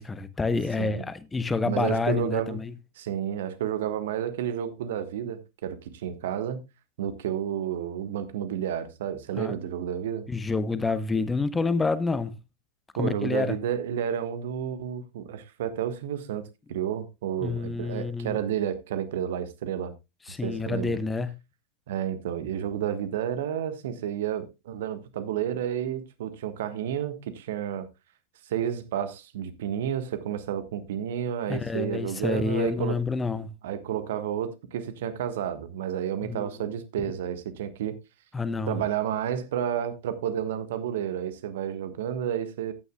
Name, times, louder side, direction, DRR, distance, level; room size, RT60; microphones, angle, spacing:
voice 1, 0.0-2.7 9.3-9.5 10.3-12.3 13.0-13.6 17.4-18.4 20.3-21.3 31.5-33.5 36.2-36.5 38.3-38.8, left 4 dB, 10° left, 0.9 m, -28 dB
voice 2, 1.6-2.6 3.0-6.7 7.0-10.3 13.0-19.9 20.4-21.0 21.9-27.9 28.5-33.0 33.6-38.0 38.7-42.7, right 9 dB, 60° right, 1.4 m, -31 dB
14.0 x 9.6 x 2.3 m
figure-of-eight pair, 90°, 0 cm